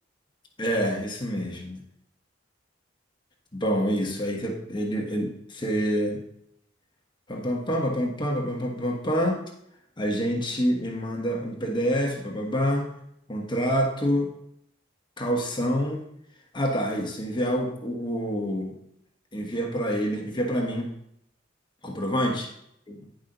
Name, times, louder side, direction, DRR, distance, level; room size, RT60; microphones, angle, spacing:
voice 1, 0.6-1.8 3.5-6.2 7.3-9.4 10.0-12.9 13.3-14.3 15.2-16.1 16.5-18.7 19.3-20.9 21.8-22.5 22.9-23.0, equal, 25° left, 0 dB, 1.4 m, -27 dB
10.5 x 5.4 x 3.9 m, 0.74 s
head